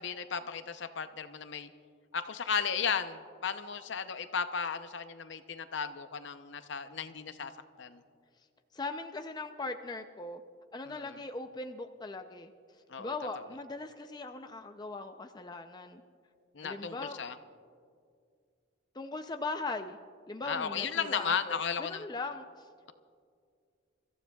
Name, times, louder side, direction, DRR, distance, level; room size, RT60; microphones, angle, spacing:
voice 1, 0.0-1.7 2.1-7.5 7.8-8.0 10.9-11.2 12.9-13.1 16.5-17.4 20.4-22.1, left 6 dB, 60° left, 10 dB, 0.7 m, -35 dB
voice 2, 8.7-10.4 10.7-12.5 13.0-16.0 16.6-17.2 18.9-20.0 20.3-22.7, left 3 dB, 20° left, 6 dB, 0.4 m, -39 dB
29.0 x 15.0 x 2.3 m, 2.2 s
head